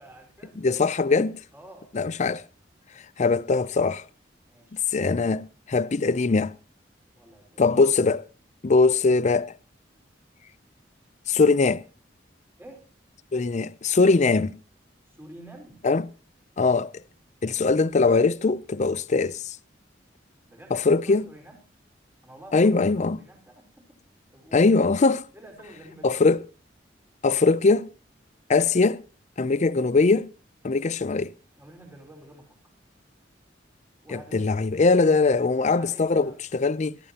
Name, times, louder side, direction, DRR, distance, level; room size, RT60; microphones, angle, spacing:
voice 1, 0.0-1.0 1.5-1.9 4.5-4.8 7.1-7.6 8.7-8.9 12.6-12.8 15.1-15.8 20.4-21.7 22.2-24.0 24.3-24.7 25.3-26.2 31.6-32.7 34.0-34.5 35.6-36.4, right 1 dB, 15° right, 4.5 m, -49 dB
voice 2, 0.6-1.4 1.9-2.4 3.2-4.0 4.9-6.6 7.6-8.2 8.6-9.5 11.3-11.8 13.3-14.5 15.8-16.1 16.6-16.9 17.4-19.6 20.7-21.2 22.5-23.2 24.5-25.2 26.0-26.4 27.2-27.9 28.5-29.0 29.4-30.3 30.6-31.3 34.1-37.0, left 3 dB, 40° left, 0.5 m, -21 dB
17.5 x 14.5 x 2.9 m
head